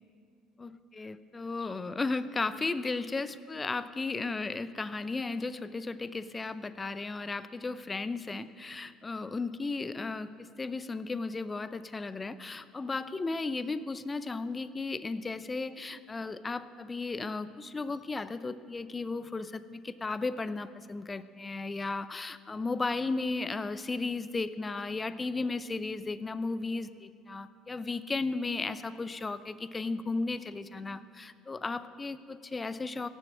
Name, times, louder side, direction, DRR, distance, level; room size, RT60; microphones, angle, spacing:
voice 1, 0.6-33.1, left 3 dB, 25° left, 14 dB, 0.6 m, -35 dB
17.0 x 7.4 x 7.4 m, 2.3 s
hypercardioid pair, 60°, 0 cm